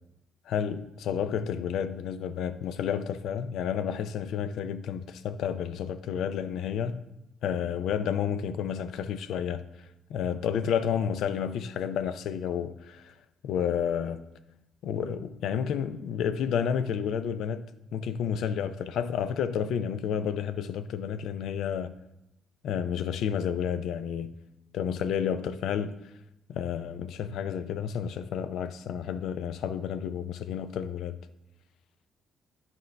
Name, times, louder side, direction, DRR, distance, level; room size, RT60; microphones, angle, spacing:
voice 1, 0.5-7.0 7.4-9.6 10.1-13.1 13.4-14.2 14.8-21.9 22.6-24.3 24.7-26.0 26.5-31.2, left 8 dB, 80° left, 0.4 m, -31 dB
11.0 x 4.5 x 3.3 m
cardioid pair, 90°, 0 cm